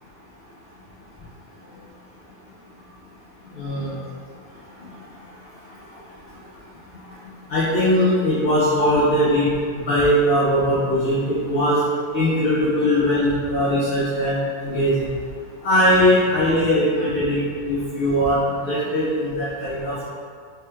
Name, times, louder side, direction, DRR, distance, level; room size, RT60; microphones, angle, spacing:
voice 1, 3.6-3.9 7.5-11.8 12.1-15.1 15.6-20.1, equal, 60° left, -9 dB, 0.6 m, -20 dB
3.2 x 2.1 x 3.1 m, 2.1 s
omnidirectional pair, 1.5 m